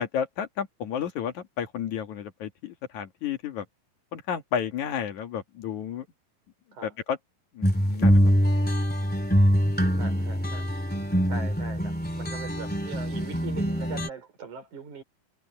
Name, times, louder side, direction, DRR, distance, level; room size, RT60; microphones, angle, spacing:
voice 1, 0.0-3.6 4.1-6.0 6.8-7.2 7.6-8.2, left 8 dB, 55° left, 2.8 m, -32 dB
sound 1, 7.6-14.1, equal, 5° left, 2.0 m, -24 dB
voice 2, 10.0-10.7 11.3-15.0, right 5 dB, 55° right, 6.1 m, -41 dB
omnidirectional pair, 4.3 m